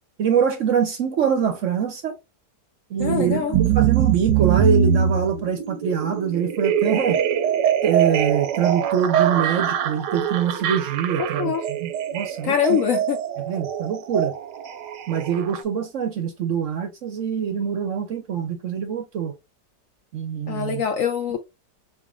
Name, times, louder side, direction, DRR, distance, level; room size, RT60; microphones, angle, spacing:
voice 1, 0.2-2.1 2.9-7.2 7.8-11.5 11.8-12.8 13.5-14.3 15.1-19.3 20.1-20.8, right 7 dB, 65° right, 0.8 m, -24 dB
voice 2, 3.0-3.5 11.2-11.6 12.4-13.2 20.5-21.4, left 8 dB, 70° left, 0.8 m, -23 dB
sound 1, 3.0-15.6, right 8 dB, 90° right, 1.2 m, -23 dB
3.9 x 3.6 x 2.4 m
omnidirectional pair, 1.8 m